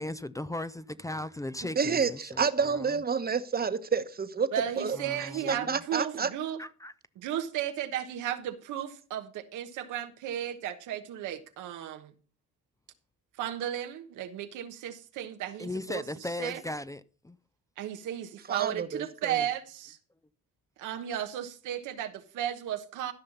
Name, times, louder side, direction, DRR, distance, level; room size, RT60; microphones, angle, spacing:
voice 1, 0.0-2.8 4.9-5.8 6.6-6.9 15.6-17.4, left 1 dB, 10° left, 0.5 m, -37 dB
voice 2, 1.8-4.5 4.8-5.0 5.4-6.3 18.5-19.4, right 5 dB, 30° right, 1.1 m, -29 dB
voice 3, 4.5-6.6 7.2-12.1 13.4-16.0 16.4-16.6 17.8-20.0 20.8-23.1, right 11 dB, 90° right, 1.2 m, -34 dB
13.5 x 5.7 x 5.3 m
cardioid pair, 90°, 30 cm